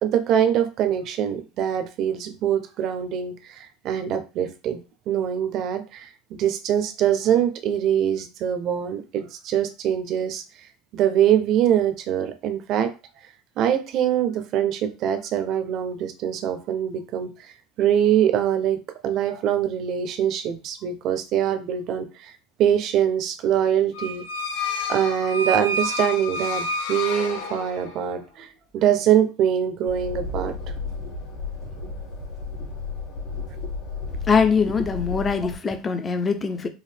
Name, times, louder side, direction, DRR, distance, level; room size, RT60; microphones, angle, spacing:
voice 1, 0.0-10.4 10.9-12.9 13.6-17.3 17.8-22.3 22.6-24.2 24.9-28.5 28.7-30.6, right 9 dB, 35° right, 0.6 m, -23 dB
sound 1, 23.9-28.1, left 2 dB, 90° left, 0.9 m, -29 dB
sound 2, 29.8-35.6, left 4 dB, 60° left, 2.3 m, -33 dB
voice 2, 34.3-36.7, left 5 dB, 15° left, 0.4 m, -22 dB
4.7 x 2.5 x 3.4 m
cardioid pair, 170°, 0 cm